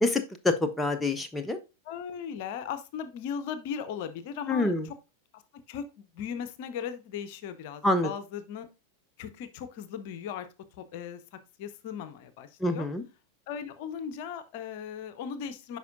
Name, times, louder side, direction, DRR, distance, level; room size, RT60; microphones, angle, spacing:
voice 1, 0.0-1.6 4.5-4.9 7.8-8.1 12.6-13.0, left 2 dB, 10° left, 7 dB, 0.6 m, -26 dB
voice 2, 1.9-4.9 5.3-5.4 5.7-8.7 9.2-10.5 10.8-11.2 11.6-12.9 13.5-15.8, left 7 dB, 50° left, 12 dB, 0.7 m, -37 dB
9.3 x 5.3 x 2.5 m, 0.29 s
figure-of-eight pair, 90°, 0 cm